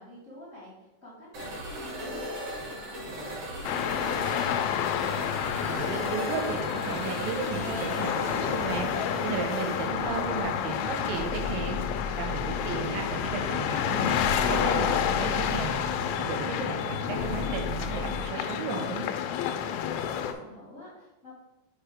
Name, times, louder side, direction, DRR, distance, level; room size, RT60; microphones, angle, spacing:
voice 1, 0.0-5.1 19.6-21.3, equal, 65° left, -9 dB, 0.7 m, -48 dB
sound 1, 1.3-18.2, equal, 60° right, 1.9 m, -37 dB
sound 2, 3.6-20.3, left 9 dB, 85° left, 2.9 m, -30 dB
voice 2, 5.6-19.0, right 6 dB, 80° right, 3 dB, 3.2 m, -35 dB
7.3 x 4.8 x 3.5 m, 1.0 s
omnidirectional pair, 6.0 m